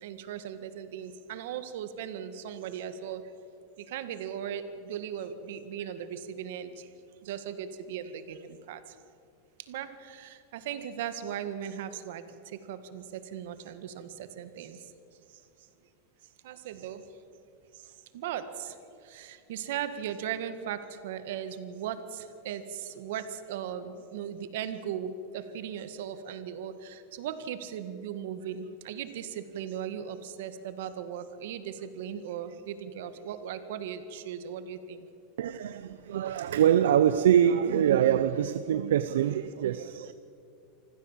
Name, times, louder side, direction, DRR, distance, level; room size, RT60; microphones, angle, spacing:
voice 1, 0.0-3.2 3.9-6.9 7.2-8.8 9.7-14.8 16.4-17.0 18.1-18.7 19.0-35.1, right 9 dB, 75° right, 1.7 m, -38 dB
voice 2, 35.4-40.1, right 10 dB, 90° right, 0.6 m, -24 dB
25.5 x 15.0 x 7.4 m
supercardioid pair, 135°, 0 cm